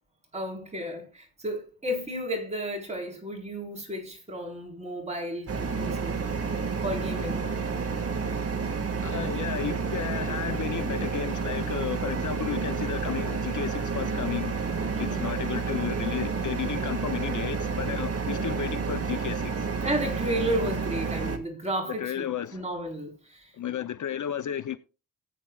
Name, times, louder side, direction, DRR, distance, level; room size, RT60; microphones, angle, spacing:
voice 1, 0.3-6.1 6.8-7.4 14.9-15.3 18.3-18.5 19.8-23.5, equal, 15° right, 4.0 m, -33 dB
sound 1, 5.5-21.4, right 5 dB, 40° right, 1.8 m, -30 dB
voice 2, 9.0-14.6 15.0-19.7 21.9-22.6 23.5-24.8, left 10 dB, 50° left, 0.6 m, -33 dB
18.0 x 8.7 x 2.3 m
cardioid pair, 105°, 38 cm